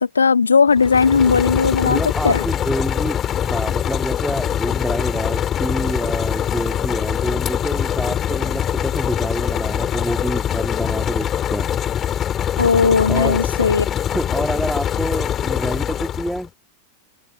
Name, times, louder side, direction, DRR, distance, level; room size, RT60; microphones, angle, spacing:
voice 1, 0.0-2.4 12.6-13.9, left 5 dB, 75° left, 1.8 m, -17 dB
sound 1, 0.7-16.5, left 10 dB, 25° left, 3.2 m, -23 dB
voice 2, 1.8-11.7 13.1-13.4 14.1-16.5, right 1 dB, ahead, 2.3 m, -27 dB
open air
figure-of-eight pair, 90°, 0 cm